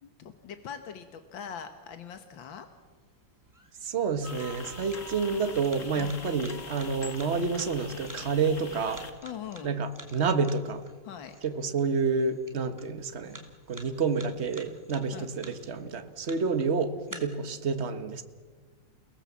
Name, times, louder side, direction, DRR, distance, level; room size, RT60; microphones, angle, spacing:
voice 1, 0.0-2.7 6.0-6.3 9.2-9.8 11.0-11.4 15.1-15.3 17.1-17.3, left 8 dB, 85° left, 7 dB, 2.0 m, -42 dB
sound 1, 2.1-17.1, right 1 dB, 10° right, 2.7 m, -52 dB
voice 2, 3.8-9.0 9.6-10.8 11.4-13.4 13.7-18.2, right 5 dB, 35° right, 9 dB, 1.6 m, -29 dB
sound 2, 4.2-9.1, left 4 dB, 40° left, 2.3 m, -43 dB
30.0 x 19.0 x 7.4 m, 1.4 s
omnidirectional pair, 2.0 m